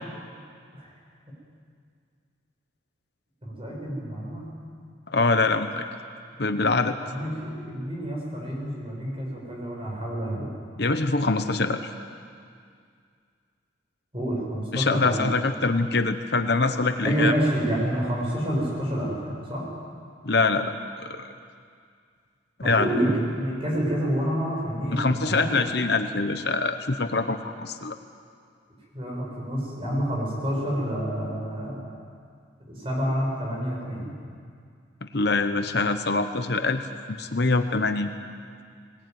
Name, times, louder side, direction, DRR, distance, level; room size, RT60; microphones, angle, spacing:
voice 1, 3.4-4.5 7.0-10.5 14.1-15.2 17.0-19.7 22.6-25.7 28.9-31.8 32.7-34.1, equal, 30° right, -3 dB, 6.8 m, -28 dB
voice 2, 5.1-5.8 6.4-6.9 10.8-11.9 14.7-17.3 20.2-20.7 21.0-21.2 22.6-22.9 24.9-28.0 35.0-36.8 37.1-38.1, left 3 dB, 55° left, 8 dB, 1.0 m, -24 dB
20.0 x 20.0 x 9.4 m, 2.2 s
head